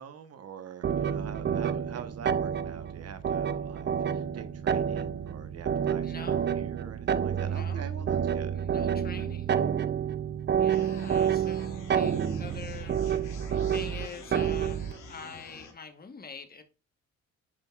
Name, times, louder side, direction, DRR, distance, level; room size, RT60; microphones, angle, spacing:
voice 1, 0.0-8.6 10.8-11.0, right 7 dB, 55° right, 1.0 m, -44 dB
sound 1, 0.8-15.0, right 8 dB, 35° right, 0.5 m, -29 dB
voice 2, 6.0-6.7 7.4-8.2 8.5-9.8 10.6-13.0 13.7-16.6, left 5 dB, 30° left, 1.1 m, -45 dB
sound 2, 10.7-15.7, left 4 dB, 80° left, 2.6 m, -48 dB
9.7 x 5.3 x 2.3 m
cardioid pair, 90°, 30 cm